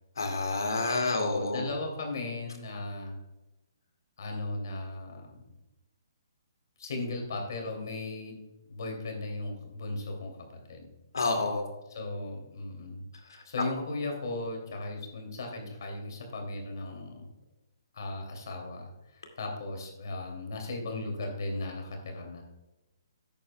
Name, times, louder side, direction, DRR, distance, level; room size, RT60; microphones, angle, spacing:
voice 1, 0.2-1.6 11.1-11.6, left 3 dB, 80° left, 3 dB, 2.2 m, -28 dB
voice 2, 1.0-3.2 4.2-5.4 6.8-8.4 8.7-10.9 11.9-13.0 13.4-17.3 17.9-22.4, left 2 dB, 65° left, 2 dB, 2.6 m, -37 dB
11.5 x 8.8 x 2.3 m, 1.0 s
hypercardioid pair, 145°, 2 cm